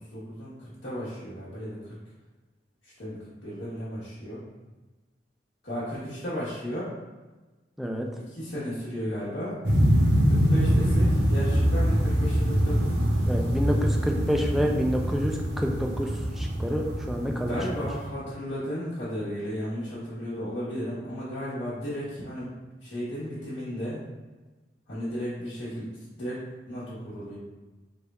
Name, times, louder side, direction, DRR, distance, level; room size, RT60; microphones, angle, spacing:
voice 1, 0.1-1.9 2.8-4.4 5.6-6.9 8.3-9.6 10.2-13.1 17.5-24.0 24.9-27.4, equal, 85° left, -10 dB, 1.1 m, -34 dB
sound 1, 9.6-18.1, equal, 65° right, 0.8 m, -24 dB
voice 2, 13.3-16.1 16.4-17.6, equal, ahead, 1 dB, 0.3 m, -28 dB
3.4 x 2.3 x 4.0 m, 1.2 s
head